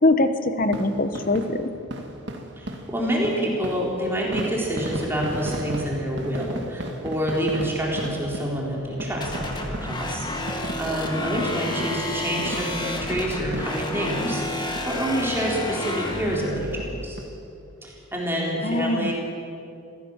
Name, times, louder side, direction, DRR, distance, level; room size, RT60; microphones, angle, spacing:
voice 1, 0.0-1.7 18.6-19.1, left 2 dB, 40° left, 9 dB, 1.1 m, -22 dB
sound 1, 0.6-14.5 14.8-14.9 15.3-15.5 15.8-16.0 16.3-17.3 17.7-17.8 18.0-18.1, right 1 dB, 55° right, 2.0 m, -36 dB
voice 2, 2.6-17.2 17.8-19.1, equal, 10° right, -3 dB, 3.8 m, -27 dB
sound 2, 9.2-16.7, left 1 dB, 20° left, 2.1 m, -30 dB
26.0 x 16.5 x 7.3 m, 2.7 s
head